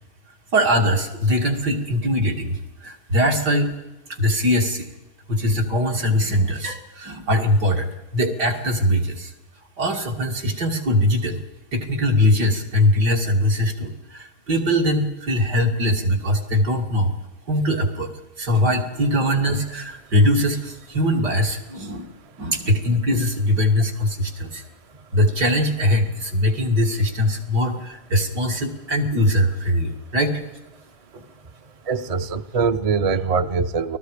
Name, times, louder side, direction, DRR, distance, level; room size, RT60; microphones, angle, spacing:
voice 1, 0.5-3.8 4.1-4.9 5.3-9.3 9.8-11.4 11.7-17.1 17.5-18.1 18.4-22.1 22.4-24.6 25.1-30.4 31.1-31.2, left 1 dB, 85° right, 1 dB, 3.5 m, -21 dB
voice 2, 31.9-34.0, right 5 dB, 40° right, 10 dB, 0.5 m, -22 dB
29.5 x 20.5 x 5.1 m, 1.0 s
omnidirectional pair, 1.8 m